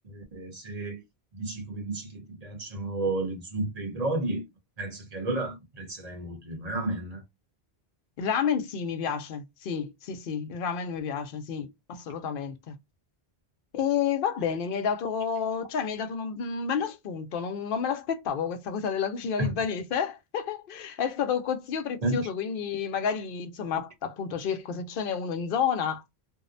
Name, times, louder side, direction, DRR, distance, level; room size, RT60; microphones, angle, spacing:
voice 1, 0.0-1.0 1.3-4.4 4.8-7.2 19.4-19.5 22.0-22.3, right 2 dB, 40° right, 0.9 m, -32 dB
voice 2, 8.2-12.8 13.7-26.0, left 7 dB, 60° left, 0.7 m, -30 dB
2.6 x 2.0 x 2.4 m
omnidirectional pair, 1.1 m